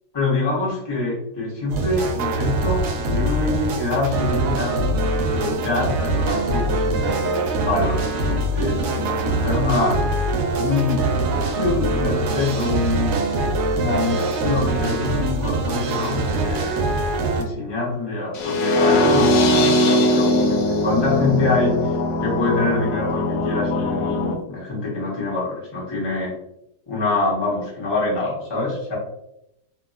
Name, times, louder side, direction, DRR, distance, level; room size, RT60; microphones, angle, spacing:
voice 1, 0.1-4.8 5.3-7.2 7.5-10.0 10.5-11.1 11.5-13.2 13.7-16.8 17.3-20.6 20.8-26.3 26.9-28.9, left 3 dB, 25° left, -5 dB, 0.5 m, -25 dB
sound 1, 1.7-17.4, right 2 dB, 75° right, 1.1 m, -23 dB
sound 2, 18.3-24.3, left 1 dB, 85° left, 1.2 m, -20 dB
2.8 x 2.7 x 2.5 m, 0.84 s
omnidirectional pair, 1.9 m